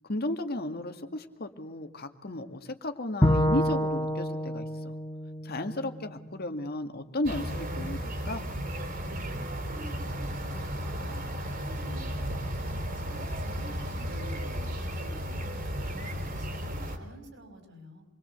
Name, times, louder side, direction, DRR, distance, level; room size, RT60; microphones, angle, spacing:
voice 1, 0.0-5.0 5.4-8.4, left 1 dB, 50° left, 7 dB, 2.0 m, -34 dB
Bowed string instrument, 3.2-6.5, equal, 15° left, 1.2 m, -28 dB
sound 1, 7.2-17.0, equal, 45° right, 4.4 m, -34 dB
voice 2, 9.0-18.0, right 1 dB, 65° right, 6 dB, 5.7 m, -49 dB
28.0 x 22.5 x 8.0 m, 0.90 s
head